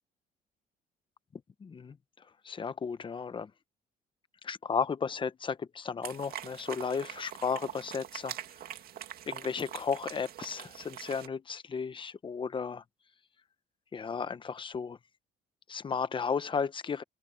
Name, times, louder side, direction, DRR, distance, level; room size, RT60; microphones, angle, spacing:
voice 1, 1.6-3.5 4.4-8.4 9.3-12.8 13.9-15.0 15.7-17.0, left 6 dB, 30° left, 1.0 m, -34 dB
sound 1, 6.0-11.3, right 11 dB, 65° right, 2.3 m, -44 dB
cardioid pair, 110°, 17 cm